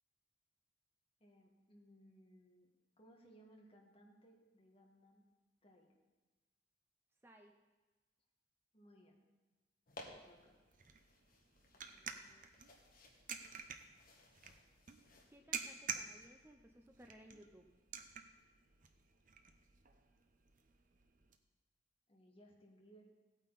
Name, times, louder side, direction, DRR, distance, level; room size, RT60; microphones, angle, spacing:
voice 1, 1.2-2.7 3.0-5.2 5.6-5.9 8.7-9.2 10.1-10.6 22.1-23.1, equal, 30° left, 0 dB, 1.9 m, -64 dB
voice 2, 7.2-7.5 11.8-12.5 15.0-17.7, right 1 dB, 15° right, 3 dB, 0.6 m, -62 dB
sound 1, 9.9-15.4, left 2 dB, 50° left, 1.6 m, -60 dB
sound 2, 10.1-21.4, right 6 dB, 45° right, 0.8 m, -50 dB
16.5 x 9.0 x 4.1 m, 1.2 s
head